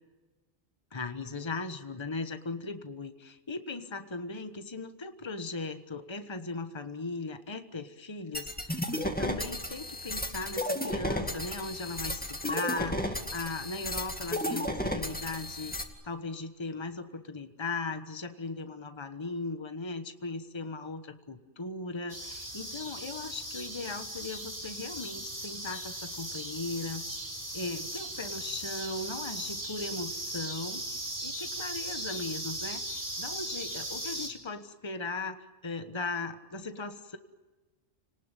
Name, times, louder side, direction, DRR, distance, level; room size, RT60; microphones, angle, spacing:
voice 1, 0.9-15.7 16.0-27.0 27.5-37.2, left 3 dB, 25° left, 8 dB, 1.3 m, -38 dB
sound 1, 8.3-15.8, left 1 dB, 5° left, 2.2 m, -33 dB
sound 2, 22.1-34.3, right 1 dB, 35° right, 4.5 m, -38 dB
29.5 x 19.0 x 9.1 m, 1.2 s
omnidirectional pair, 1.2 m